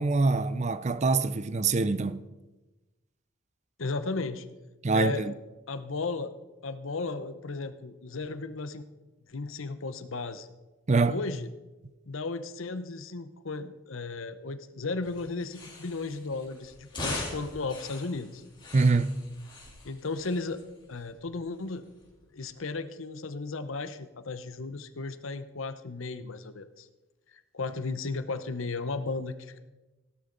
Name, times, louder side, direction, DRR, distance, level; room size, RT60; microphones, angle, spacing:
voice 1, 0.0-2.2 4.8-5.3 10.9-11.2 18.7-19.2, right 3 dB, 35° right, 0.5 m, -24 dB
voice 2, 3.8-4.5 4.9-5.3 5.7-6.3 6.6-8.8 9.3-10.5 11.1-11.5 12.1-18.4 19.8-20.6 20.9-21.9 22.3-26.9 27.3-29.6, left 3 dB, 70° left, 0.9 m, -35 dB
sound 1, 15.0-22.6, left 2 dB, 25° left, 3.3 m, -42 dB
16.0 x 12.5 x 4.0 m
head